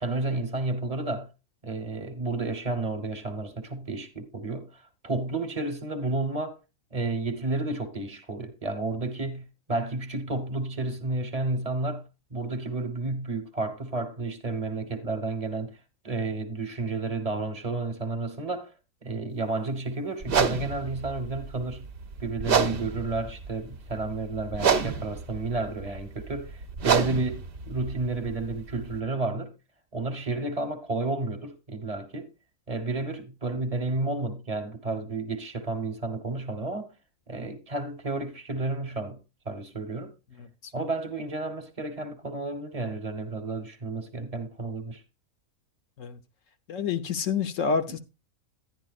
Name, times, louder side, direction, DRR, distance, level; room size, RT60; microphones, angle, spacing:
voice 1, 0.0-1.3 1.6-6.6 6.9-15.8 16.0-18.7 19.0-21.9 22.2-29.5 29.9-32.3 32.7-36.9 37.3-39.2 39.4-40.1 40.7-45.0, right 2 dB, 30° right, 1.1 m, -31 dB
sound 1, 20.2-29.0, right 6 dB, 50° right, 0.9 m, -29 dB
voice 2, 40.4-40.7 46.0-46.2 46.7-48.0, left 6 dB, 70° left, 1.0 m, -28 dB
11.0 x 10.5 x 2.4 m
omnidirectional pair, 1.5 m